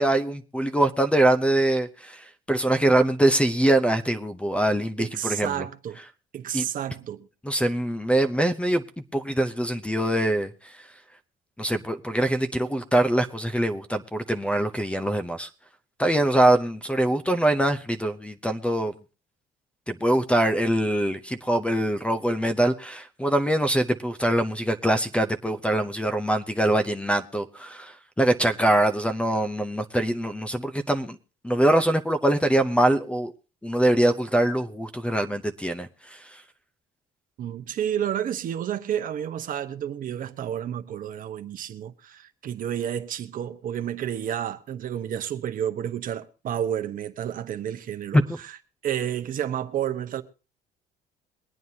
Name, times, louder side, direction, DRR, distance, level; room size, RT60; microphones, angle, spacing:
voice 1, 0.0-2.2 2.5-5.5 6.5-6.7 7.4-8.8 9.1-10.5 11.6-15.5 16.0-18.9 19.9-31.2 31.4-33.3 33.6-36.2 48.1-48.2, right 1 dB, 5° left, 0.7 m, -23 dB
voice 2, 5.0-6.0 6.3-7.3 37.4-48.6 48.8-50.2, right 10 dB, 55° right, 1.0 m, -30 dB
23.0 x 9.3 x 2.8 m
cardioid pair, 110°, 17 cm